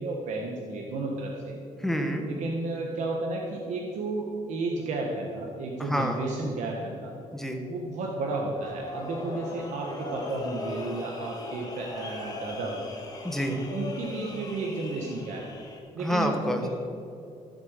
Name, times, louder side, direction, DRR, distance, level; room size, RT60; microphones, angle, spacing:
voice 1, 0.0-1.6 2.3-7.2 7.7-12.9 13.7-15.6 15.9-16.7, right 2 dB, 60° right, -1 dB, 1.5 m, -33 dB
voice 2, 1.8-2.2 5.8-6.2 7.3-7.6 13.2-13.6 16.0-16.6, equal, 5° left, 3 dB, 1.3 m, -28 dB
sound 1, 8.6-15.8, left 2 dB, 25° left, 1.8 m, -39 dB
15.0 x 8.0 x 6.7 m, 2.7 s
cardioid pair, 170°, 14 cm